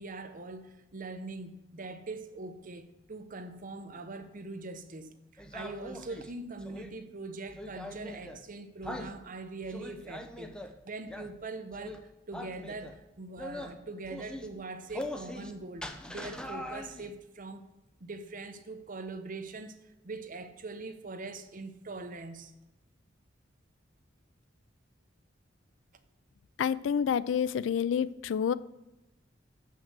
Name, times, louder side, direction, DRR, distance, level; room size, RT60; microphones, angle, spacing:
voice 1, 0.0-10.6 10.8-17.7 18.0-19.8 20.0-22.5, right 3 dB, 45° right, 0.8 m, -42 dB
sound 1, 5.4-6.9 7.5-8.4 8.8-9.1 9.6-10.7 11.1-11.3 11.7-12.0 12.3-13.0 13.4-13.7 14.0-14.5 14.9-15.5 15.8-17.1, left 1 dB, 5° left, 0.7 m, -41 dB
voice 2, 26.6-28.5, left 7 dB, 75° left, 0.3 m, -28 dB
7.3 x 5.8 x 7.3 m
head